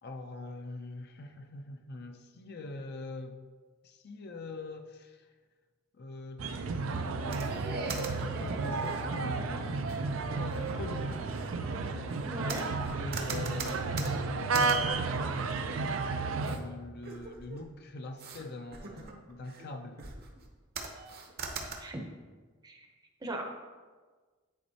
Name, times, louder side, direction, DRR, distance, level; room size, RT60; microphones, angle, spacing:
voice 1, 0.0-3.4 3.8-5.3 5.9-11.3 12.8-15.8 16.4-20.1, left 2 dB, 55° left, 5 dB, 0.5 m, -44 dB
sound 1, 6.4-16.6, right 3 dB, 85° right, 0.5 m, -32 dB
sound 2, 7.3-9.3 9.9-10.0 10.4-11.6 12.1-15.9 16.4-16.6 17.0-17.7 18.2-18.4 18.7-19.7 20.0-20.5 20.8-21.8, right 4 dB, 50° right, 0.8 m, -41 dB
voice 2, 12.2-12.7 21.8-22.0 22.6-22.9 23.2-23.4, right 1 dB, 20° right, 2 dB, 0.7 m, -38 dB
9.8 x 4.3 x 2.8 m, 1.4 s
head